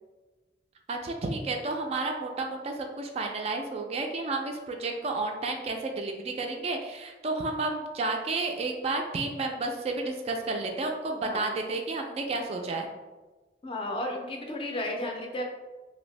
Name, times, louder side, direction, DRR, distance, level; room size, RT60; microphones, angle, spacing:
voice 1, 0.9-12.9, right 3 dB, 35° right, 3 dB, 0.3 m, -31 dB
voice 2, 11.2-11.5 13.6-15.4, left 1 dB, 30° left, 2 dB, 0.4 m, -33 dB
2.8 x 2.6 x 3.1 m, 1.2 s
head